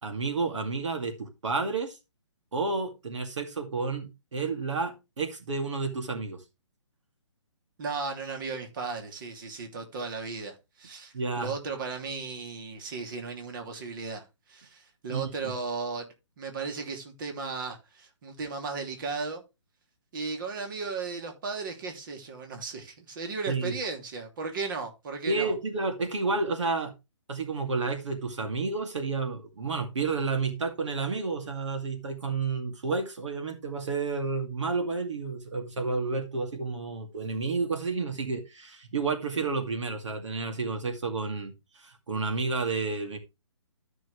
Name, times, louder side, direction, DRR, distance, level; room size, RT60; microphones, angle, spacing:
voice 1, 0.0-2.0 2.5-6.4 11.1-11.5 15.1-15.5 23.5-23.8 25.3-26.9 27.3-43.2, right 4 dB, 75° right, 2.3 m, -31 dB
voice 2, 7.8-14.2 14.5-16.1 16.4-19.4 20.1-25.5, right 4 dB, 45° right, 2.7 m, -35 dB
13.0 x 6.1 x 3.2 m
hypercardioid pair, 155°, 15 cm